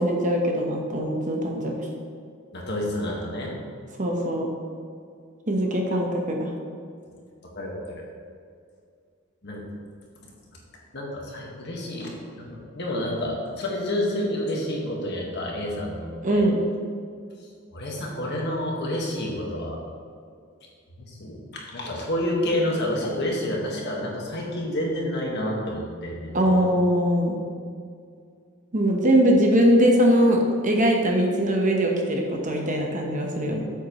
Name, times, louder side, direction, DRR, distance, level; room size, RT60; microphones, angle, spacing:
voice 1, 0.0-1.8 4.0-4.5 5.5-6.5 16.2-16.6 26.3-27.5 28.7-33.6, equal, 35° right, 1 dB, 1.1 m, -21 dB
voice 2, 2.5-3.5 7.5-8.0 9.4-9.6 10.9-16.4 17.7-19.8 21.0-26.7, left 1 dB, 55° left, -2 dB, 1.7 m, -29 dB
8.7 x 7.8 x 3.1 m, 2.2 s
head